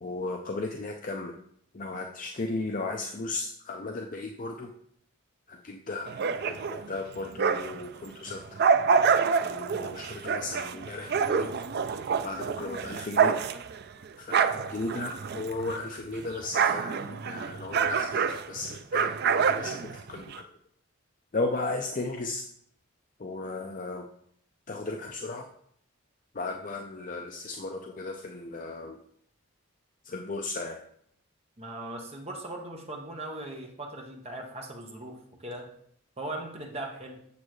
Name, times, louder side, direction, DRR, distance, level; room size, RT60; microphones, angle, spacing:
voice 1, 0.0-1.3 1.7-4.7 5.5-6.1 6.4-8.6 9.4-11.5 12.2-13.4 14.2-20.5 21.3-22.5 23.2-24.1 24.7-25.5 26.3-29.0 30.0-30.8, left 3 dB, 40° left, 3 dB, 0.5 m, -35 dB
sound 1, 6.1-7.9 8.3-15.9 16.1-20.4, right 6 dB, 50° right, 0.4 m, -27 dB
voice 2, 31.6-35.7 36.2-37.2, right 1 dB, 30° right, 1 dB, 1.2 m, -39 dB
8.5 x 7.3 x 3.2 m, 0.68 s
head